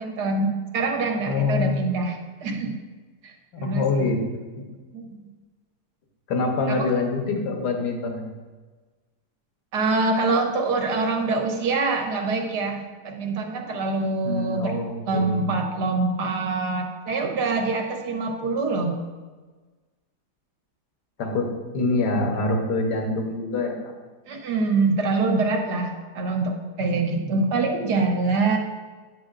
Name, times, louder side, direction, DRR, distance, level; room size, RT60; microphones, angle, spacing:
voice 1, 0.0-2.7 3.2-3.3 3.6-4.1 4.9-5.1 6.7-6.9 9.7-14.8 15.1-19.0 24.3-28.6, right 3 dB, 75° right, 2 dB, 1.5 m, -25 dB
voice 2, 1.2-1.8 3.5-4.2 6.3-8.2 14.2-15.5 21.2-21.5 21.7-23.7 27.2-27.4, left 3 dB, 75° left, 2 dB, 1.6 m, -25 dB
9.3 x 7.4 x 2.5 m, 1.3 s
omnidirectional pair, 1.8 m